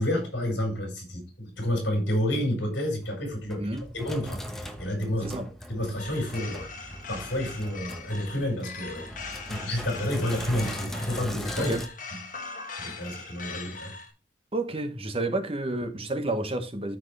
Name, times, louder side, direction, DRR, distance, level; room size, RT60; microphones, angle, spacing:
voice 1, 0.0-3.6 3.9-5.4 5.7-6.7 7.1-9.0 9.5-11.7 12.8-13.9, left 1 dB, 70° left, 5.0 m, -29 dB
Sink (filling or washing), 3.0-11.9, equal, ahead, 0.9 m, -39 dB
sound 1, 6.0-14.1, left 4 dB, 45° left, 1.7 m, -41 dB
voice 2, 14.5-17.0, right 2 dB, 30° right, 1.1 m, -30 dB
13.5 x 4.6 x 3.3 m
head